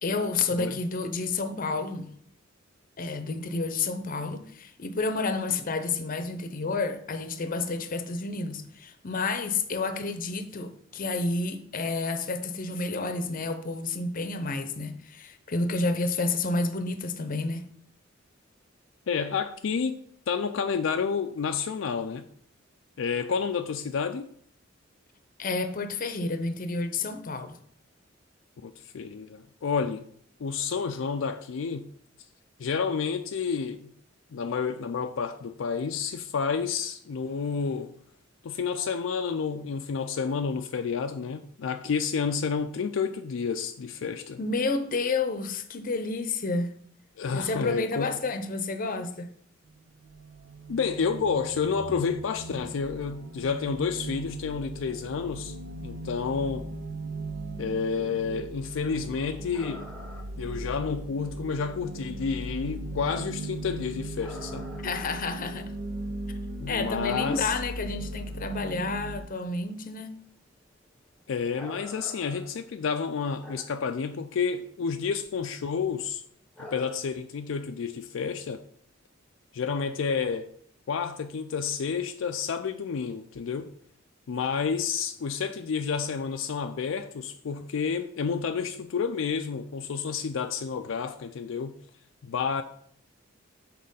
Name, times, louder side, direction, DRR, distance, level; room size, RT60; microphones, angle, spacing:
voice 1, 0.0-2.1 3.0-17.7 25.4-27.6 44.4-46.7 47.3-49.3 64.8-65.7 66.7-70.2, left 3 dB, 45° left, 0.7 m, -30 dB
voice 2, 19.1-20.0 20.3-22.3 23.0-24.3 28.6-30.1 30.4-31.9 32.6-33.9 34.3-37.9 38.4-44.4 47.2-48.2 50.7-55.6 55.8-56.7 57.6-59.9 60.4-64.7 66.6-67.5 71.3-76.2 76.6-78.6 79.5-80.5 80.9-83.7 84.3-91.7 92.2-92.6, left 6 dB, 75° left, 0.4 m, -30 dB
sound 1, 49.7-69.2, right 2 dB, 65° right, 0.7 m, -38 dB
sound 2, 59.5-60.4 60.8-60.9 61.2-61.6 62.6-62.9 63.4-63.6 64.2-66.3 66.6-68.0 68.4-68.5 68.9-69.0 69.3-69.6 69.9-70.1 70.8-73.9 74.2-74.4 75.0-75.3 75.6-75.9 76.5-76.9, left 1 dB, 5° left, 1.0 m, -46 dB
6.4 x 4.3 x 5.4 m
head